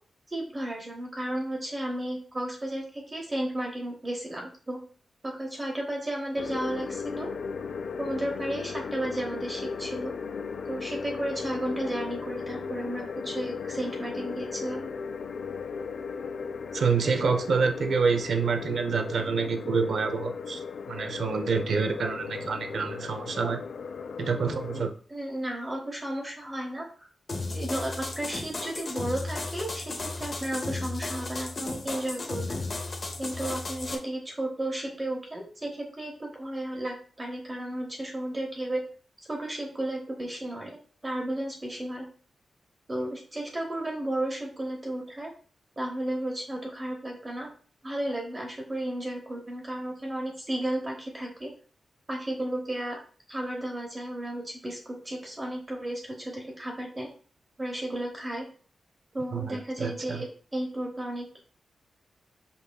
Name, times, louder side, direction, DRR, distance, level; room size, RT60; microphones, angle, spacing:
voice 1, 0.3-4.8 5.2-7.3 8.0-10.1 10.6-14.9 25.1-27.1 27.5-32.6 33.2-38.8 39.2-42.1 42.9-45.3 45.8-47.5 47.8-51.5 52.1-53.0 53.3-57.1 57.6-58.5 59.1-61.4, right 1 dB, 25° right, -1 dB, 0.9 m, -33 dB
sound 1, 6.4-24.9, left 5 dB, 70° left, 0.3 m, -36 dB
voice 2, 16.7-20.6 20.9-23.6 24.2-24.9 59.3-60.2, right 5 dB, 70° right, 7 dB, 0.6 m, -27 dB
sound 2, 27.3-33.9, left 3 dB, 45° left, 0.7 m, -34 dB
5.5 x 4.0 x 2.3 m, 0.42 s
wide cardioid pair, 115°, 0 cm